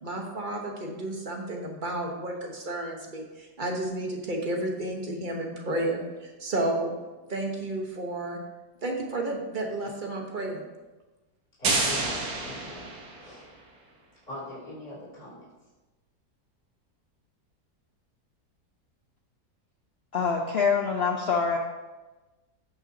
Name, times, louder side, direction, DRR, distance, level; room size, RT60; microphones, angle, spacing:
voice 1, 0.0-6.9 7.3-8.4 8.8-10.6, right 1 dB, 35° right, 1 dB, 1.1 m, -32 dB
voice 2, 11.6-12.9 13.2-13.4 14.3-15.4, left 2 dB, 35° left, -8 dB, 3.4 m, -41 dB
sound 1, 11.6-13.5, right 3 dB, 65° right, 1.5 m, -29 dB
voice 3, 20.1-21.6, left 5 dB, 60° left, 2 dB, 0.6 m, -25 dB
14.5 x 5.7 x 2.8 m, 1.2 s
omnidirectional pair, 1.8 m